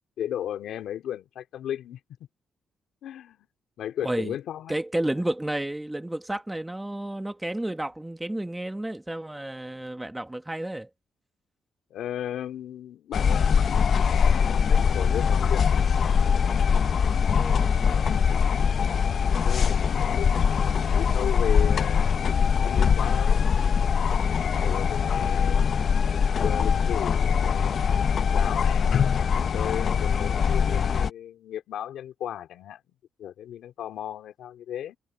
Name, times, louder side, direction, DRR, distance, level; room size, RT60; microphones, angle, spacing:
voice 1, 0.2-2.0 3.0-3.5 3.8-4.8 11.9-15.7 19.3-22.4 22.6-23.8 24.6-25.7 26.4-27.9 28.3-28.9 29.5-32.8 33.2-35.0, left 10 dB, 75° left, 2.7 m, -35 dB
voice 2, 4.0-4.4 4.7-10.9 17.3-18.6, right 1 dB, 5° right, 1.3 m, -32 dB
sound 1, 13.1-31.1, left 6 dB, 45° left, 0.8 m, -22 dB
cardioid pair, 155°, 0 cm